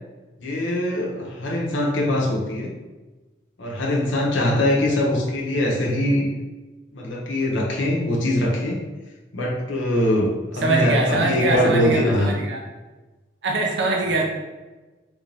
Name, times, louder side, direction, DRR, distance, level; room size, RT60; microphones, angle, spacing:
voice 1, 0.4-2.7 3.6-6.3 6.9-8.8 9.3-12.3, left 1 dB, 90° left, -2 dB, 0.8 m, -22 dB
voice 2, 10.6-12.6 13.4-14.2, right 2 dB, 65° right, 0 dB, 0.5 m, -23 dB
3.3 x 2.6 x 3.3 m, 1.2 s
head